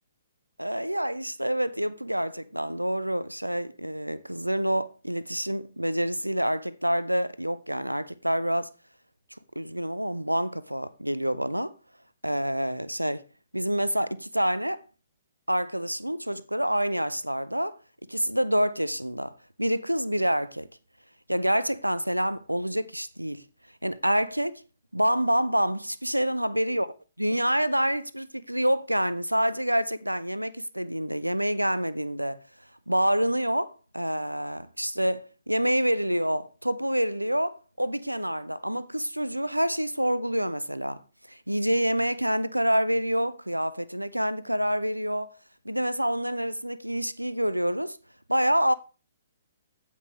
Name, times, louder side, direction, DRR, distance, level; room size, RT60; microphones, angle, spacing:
voice 1, 0.6-8.7 9.6-11.7 12.2-13.2 13.5-14.8 15.5-17.8 18.1-20.7 21.3-23.4 23.8-24.6 24.9-26.9 27.2-32.4 32.9-41.0 41.3-45.3 45.6-48.0 48.3-48.7, equal, 90° right, 0.5 m, -27 dB
15.5 x 5.5 x 3.2 m
figure-of-eight pair, 120°, 0 cm